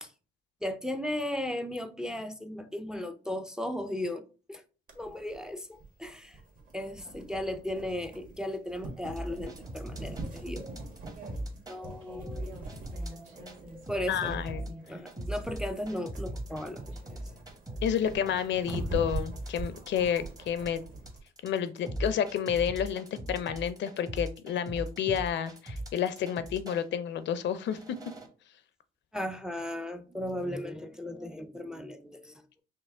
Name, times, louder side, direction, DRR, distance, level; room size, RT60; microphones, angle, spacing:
voice 1, 0.6-4.6 5.0-6.4 6.7-10.9 11.7-12.6 12.9-17.2 18.7-18.8 29.1-32.6, left 1 dB, 5° right, 0.4 m, -36 dB
sound 1, 4.9-21.2, right 2 dB, 40° right, 1.3 m, -43 dB
sound 2, 9.1-11.8 12.3-13.6 13.9-26.8 27.4-28.3, right 1 dB, 20° right, 0.9 m, -39 dB
Human voice, 12.0-17.2, equal, 80° right, 1.4 m, -50 dB
voice 2, 14.1-14.6 17.8-20.8 21.4-27.8, left 8 dB, 65° left, 0.5 m, -30 dB
5.4 x 2.0 x 3.5 m
cardioid pair, 90°, 20 cm